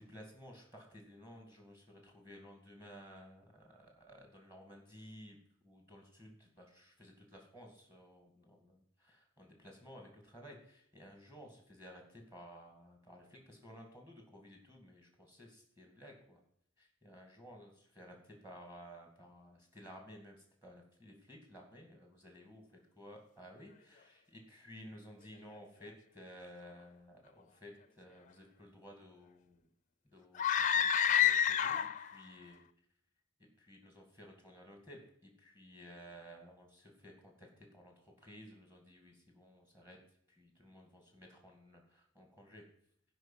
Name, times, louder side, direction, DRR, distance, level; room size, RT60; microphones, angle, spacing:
voice 1, 0.0-5.4 5.6-16.4 16.8-22.6 23.0-29.6 30.1-32.7 33.4-40.0 40.3-42.7, equal, 10° right, 2 dB, 2.1 m, -55 dB
sound 1, 30.3-32.1, left 9 dB, 35° left, 0.4 m, -28 dB
13.0 x 5.4 x 7.3 m, 0.68 s
head